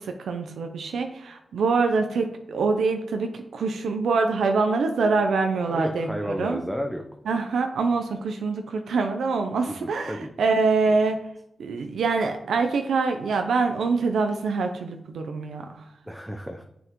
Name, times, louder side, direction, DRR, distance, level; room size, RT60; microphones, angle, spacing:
voice 1, 0.0-6.6 7.3-11.2 11.6-15.8, right 4 dB, 85° right, 5 dB, 0.6 m, -25 dB
voice 2, 5.7-7.0 9.7-10.3 10.8-10.9 16.1-16.6, equal, 5° right, 3 dB, 0.7 m, -32 dB
7.1 x 6.4 x 3.0 m, 0.83 s
cardioid pair, 65°, 0 cm